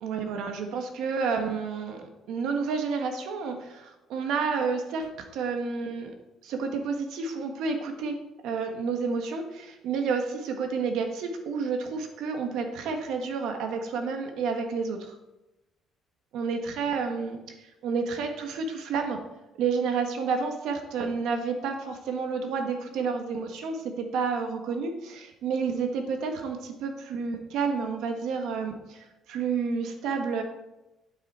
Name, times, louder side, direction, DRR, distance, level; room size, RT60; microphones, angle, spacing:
voice 1, 0.0-6.1 6.4-8.1 8.4-15.1 16.3-17.4 17.8-19.2 19.6-30.4, right 5 dB, 70° right, 4 dB, 1.5 m, -30 dB
9.0 x 8.4 x 4.4 m, 0.97 s
cardioid pair, 175°, 0 cm